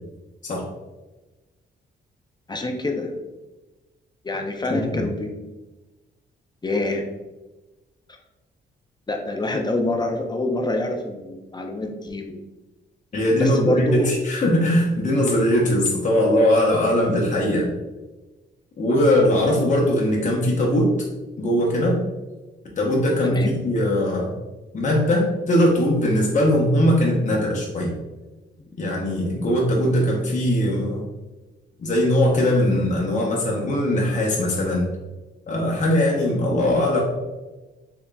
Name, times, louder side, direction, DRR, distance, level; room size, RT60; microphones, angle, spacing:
voice 1, 2.5-3.1 4.2-5.3 6.6-7.1 9.1-12.4 13.4-14.1 23.2-23.5, left 2 dB, 20° left, 3 dB, 0.5 m, -26 dB
voice 2, 4.7-5.0 13.1-17.7 18.8-20.9 21.4-22.0 22.8-24.3 24.7-27.9 28.8-31.1 31.8-34.9 35.5-37.0, left 1 dB, 40° left, -3 dB, 0.9 m, -20 dB
3.8 x 3.5 x 2.3 m, 1.1 s
cardioid pair, 90°, 19 cm